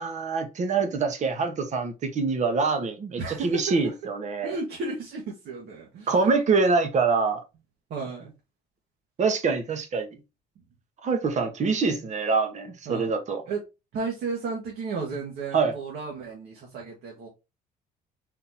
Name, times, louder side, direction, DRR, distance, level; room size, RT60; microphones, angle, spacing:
voice 1, 0.0-4.6 6.1-7.4 9.2-10.2 11.0-13.4 15.5-15.7, right 4 dB, 45° right, 1.1 m, -25 dB
voice 2, 3.2-3.9 4.4-6.2 7.9-8.3 12.8-13.1 13.5-13.6 13.9-17.3, right 4 dB, 70° right, 1.5 m, -33 dB
4.3 x 2.9 x 4.1 m
cardioid pair, 110°, 17 cm